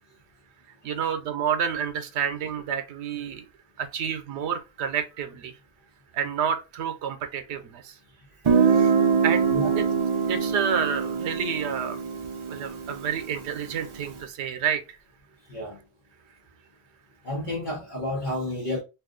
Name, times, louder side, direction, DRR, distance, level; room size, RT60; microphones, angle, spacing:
voice 1, 0.8-3.4 3.8-5.5 6.1-7.8 8.8-8.9 9.2-9.5 9.8-9.9 10.3-12.0 12.5-14.8, right 7 dB, 85° right, 0.9 m, -29 dB
Guitar, 8.5-14.0, right 6 dB, 50° right, 0.3 m, -24 dB
voice 2, 15.5-15.8 17.2-18.8, left 1 dB, 50° left, 1.0 m, -31 dB
2.5 x 2.4 x 3.6 m
omnidirectional pair, 1.1 m